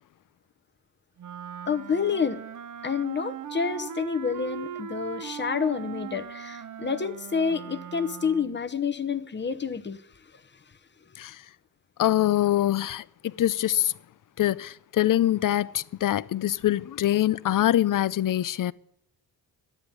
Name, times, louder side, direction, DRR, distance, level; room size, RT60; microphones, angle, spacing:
Wind instrument woodwind instrument, 1.2-8.6, right 8 dB, 50° right, 0.7 m, -39 dB
voice 1, 1.7-2.4 2.8-10.0, left 6 dB, 25° left, 0.9 m, -28 dB
voice 2, 12.0-13.9 14.4-18.7, left 13 dB, 55° left, 0.5 m, -24 dB
12.0 x 9.7 x 9.8 m
wide cardioid pair, 150°, 40 cm